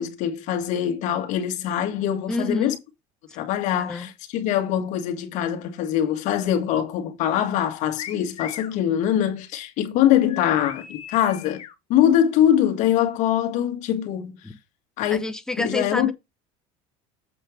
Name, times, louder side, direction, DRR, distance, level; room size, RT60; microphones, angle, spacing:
voice 1, 0.0-2.8 3.3-11.6 11.9-14.4 15.0-15.2 15.6-16.1, left 10 dB, 60° left, 1.8 m, -23 dB
voice 2, 2.3-2.8 3.8-4.1 14.4-14.6 15.1-16.1, left 2 dB, 5° left, 1.0 m, -28 dB
sound 1, 8.0-8.8 10.3-11.7, left 9 dB, 45° left, 1.4 m, -38 dB
7.8 x 4.3 x 4.9 m
cardioid pair, 135°, 14 cm